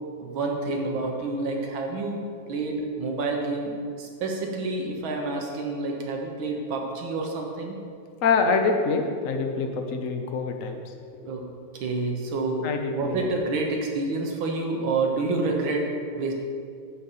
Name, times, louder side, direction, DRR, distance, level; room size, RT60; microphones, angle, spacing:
voice 1, 0.2-2.2 2.5-7.8 11.3-11.5 11.7-16.3, right 3 dB, 75° right, 1 dB, 2.0 m, -28 dB
voice 2, 8.2-10.8 12.6-13.3, left 4 dB, 55° left, 4 dB, 1.0 m, -25 dB
10.5 x 4.1 x 7.4 m, 2.3 s
omnidirectional pair, 2.2 m